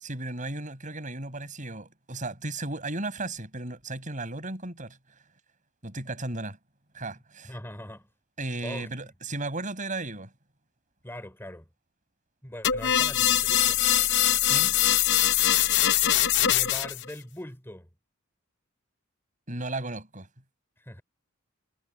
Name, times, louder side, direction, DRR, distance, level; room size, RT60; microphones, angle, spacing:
voice 1, 0.0-5.0 5.8-6.6 6.9-7.5 8.4-10.3 14.4-14.8 19.5-20.3, right 2 dB, 40° right, 7.5 m, -35 dB
voice 2, 7.4-8.1 8.6-9.1 11.0-11.7 12.4-13.8 16.4-17.9 20.8-21.0, left 1 dB, 10° left, 3.8 m, -41 dB
sound 1, 12.6-17.0, left 12 dB, 55° left, 0.7 m, -22 dB
head